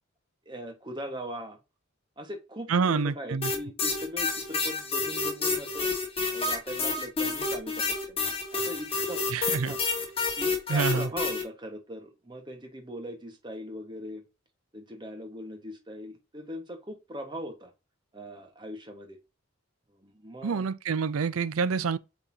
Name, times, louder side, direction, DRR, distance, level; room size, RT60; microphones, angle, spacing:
voice 1, 0.4-1.6 2.2-5.9 6.3-8.2 8.5-9.2 9.5-9.8 10.4-14.2 14.7-17.7 18.1-19.2 19.9-20.6, equal, 20° right, 1.4 m, -40 dB
voice 2, 2.7-3.5 9.3-9.7 10.7-11.1 20.4-22.0, right 5 dB, 90° right, 0.5 m, -27 dB
sound 1, 3.4-11.4, left 3 dB, 25° left, 1.6 m, -29 dB
8.0 x 4.2 x 2.8 m
head